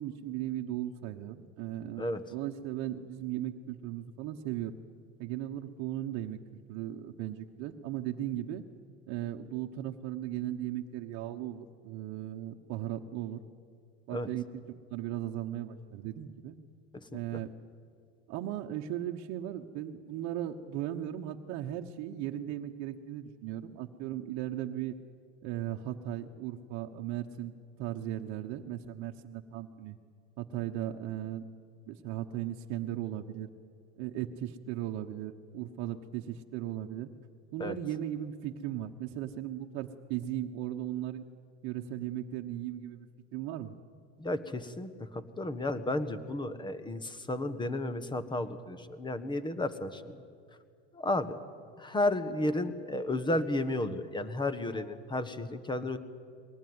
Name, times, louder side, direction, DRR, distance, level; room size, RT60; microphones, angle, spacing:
voice 1, 0.0-2.0 2.3-4.8 5.2-6.4 6.7-8.6 9.1-13.4 14.1-16.6 17.1-17.5 18.3-25.0 25.4-27.5 27.8-30.0 30.4-31.4 31.9-33.5 34.0-37.1 37.5-41.2 41.6-43.1 43.3-43.7, right 12 dB, 50° right, 2 dB, 1.2 m, -37 dB
voice 2, 44.2-50.2 50.9-51.4 51.8-56.0, left 1 dB, 15° left, 13 dB, 1.3 m, -33 dB
21.5 x 18.5 x 9.6 m, 2.2 s
supercardioid pair, 120°, 35 cm